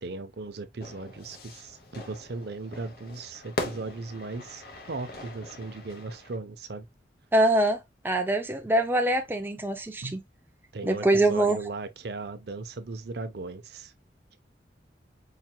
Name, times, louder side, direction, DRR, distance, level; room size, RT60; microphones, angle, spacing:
voice 1, 0.0-6.8 10.0-10.2 10.7-13.9, right 3 dB, 60° right, 0.6 m, -37 dB
Fire / Fireworks, 0.8-6.4, left 2 dB, 55° left, 1.0 m, -40 dB
voice 2, 7.3-10.2 10.8-11.6, right 1 dB, 10° right, 0.5 m, -24 dB
4.7 x 2.9 x 2.2 m
head